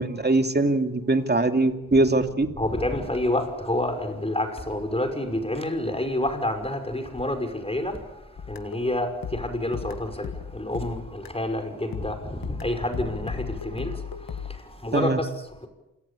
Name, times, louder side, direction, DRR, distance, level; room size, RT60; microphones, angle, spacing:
voice 1, 0.0-2.5 14.9-15.2, right 2 dB, 30° right, 2.7 m, -22 dB
voice 2, 2.6-15.7, left 1 dB, 15° left, 5.7 m, -29 dB
sound 1, 8.4-11.5 11.9-14.6, left 7 dB, 85° left, 1.8 m, -37 dB
27.5 x 19.0 x 8.6 m
cardioid pair, 45°, 33 cm